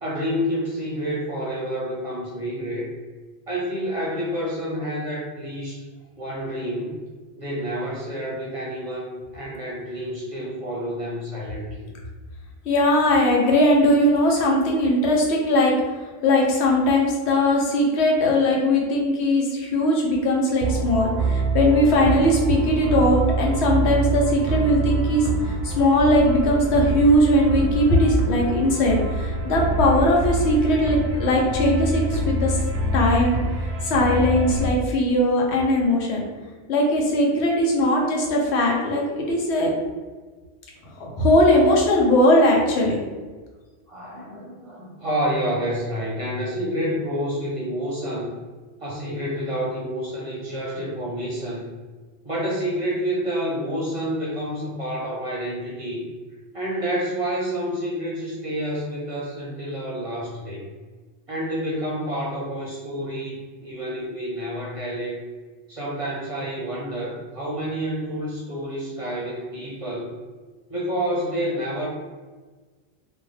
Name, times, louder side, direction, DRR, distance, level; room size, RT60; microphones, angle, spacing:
voice 1, 0.0-2.9 3.5-5.8 6.2-7.0 7.4-11.9 43.9-48.3 48.8-51.7 52.2-56.1 56.5-60.6 61.3-65.2 65.7-70.1 70.7-71.9, equal, 40° right, -5 dB, 0.6 m, -29 dB
voice 2, 12.7-15.7 16.2-25.3 25.6-32.6 32.9-33.4 33.8-36.2 36.7-39.7 41.0-43.0, left 1 dB, 90° left, -1 dB, 0.9 m, -19 dB
sound 1, 20.6-34.7, right 3 dB, 90° right, 0.9 m, -25 dB
2.5 x 2.2 x 3.1 m, 1.4 s
omnidirectional pair, 1.1 m